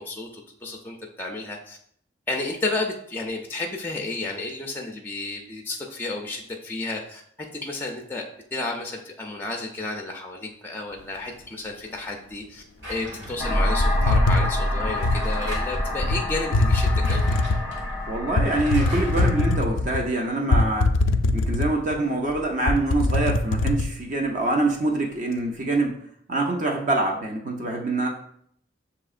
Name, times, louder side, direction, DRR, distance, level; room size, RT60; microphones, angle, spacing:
voice 1, 0.0-1.8 2.3-7.2 7.6-8.2 8.5-12.6 12.9-17.2, left 2 dB, 10° left, 1 dB, 0.4 m, -32 dB
Drawer open or close, 12.8-13.7 14.8-15.9 16.8-19.4, equal, 65° right, 1.5 m, -35 dB
sound 1, 13.4-19.6, left 1 dB, 10° right, 0.7 m, -27 dB
sound 2, 13.8-15.2 16.0-16.2 16.5-17.7 18.4-20.0 20.5-21.9 22.3-22.4 22.7-23.9, left 2 dB, 85° left, 0.3 m, -22 dB
voice 2, 18.1-20.9 21.3-26.0 26.3-28.1, right 2 dB, 40° right, 1 dB, 0.5 m, -25 dB
6.8 x 2.8 x 2.4 m, 0.66 s
head